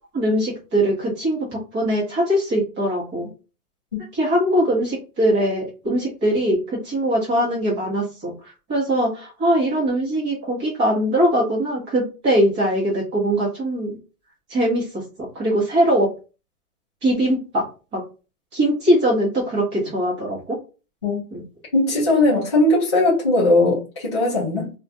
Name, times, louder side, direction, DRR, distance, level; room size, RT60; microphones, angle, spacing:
voice 1, 0.1-3.3 4.1-14.0 14.5-16.1 17.0-17.7 17.9-18.0 18.5-20.6 21.3-21.4, right 1 dB, 15° right, 0.9 m, -21 dB
voice 2, 21.7-24.7, left 2 dB, 20° left, 0.4 m, -19 dB
2.4 x 2.4 x 4.0 m
hypercardioid pair, 165°, 44 cm